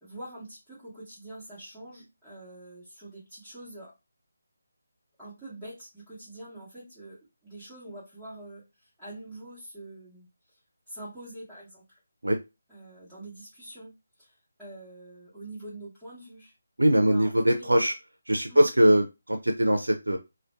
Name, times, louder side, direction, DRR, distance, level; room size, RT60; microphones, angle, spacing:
voice 1, 0.0-3.9 5.2-10.3 10.9-12.0 12.7-13.9 14.2-16.5 17.1-17.7 18.5-18.6, right 1 dB, ahead, -16 dB, 1.2 m, -45 dB
voice 2, 16.8-17.9 18.3-20.2, right 1 dB, 85° right, 4 dB, 0.4 m, -22 dB
2.5 x 2.2 x 2.2 m, 0.25 s
figure-of-eight pair, 155°, 0 cm